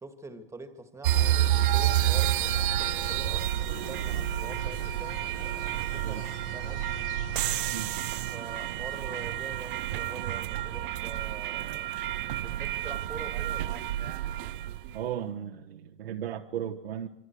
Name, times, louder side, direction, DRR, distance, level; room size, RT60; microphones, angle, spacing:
voice 1, 0.0-7.0 8.3-11.9 12.4-13.9, right 3 dB, 10° right, 2.0 m, -45 dB
sound 1, 1.0-15.0, right 12 dB, 55° right, 0.8 m, -29 dB
sound 2, 1.1-9.4, left 6 dB, 60° left, 7.4 m, -47 dB
voice 2, 14.9-17.1, right 10 dB, 70° right, 1.4 m, -35 dB
26.5 x 24.5 x 4.7 m
hypercardioid pair, 120°, 31 cm